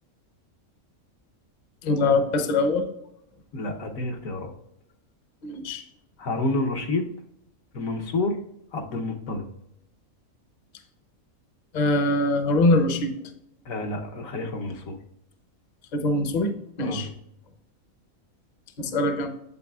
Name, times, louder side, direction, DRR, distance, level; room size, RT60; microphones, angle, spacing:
voice 1, 1.8-2.9 5.4-5.8 11.7-13.1 15.9-17.1 18.8-19.3, left 2 dB, 40° left, 7 dB, 0.7 m, -23 dB
voice 2, 3.5-4.5 6.2-7.1 7.7-8.4 8.7-9.4 13.7-15.0 16.8-17.0, left 2 dB, 75° left, 3 dB, 1.3 m, -29 dB
8.3 x 7.5 x 2.3 m, 0.78 s
omnidirectional pair, 1.5 m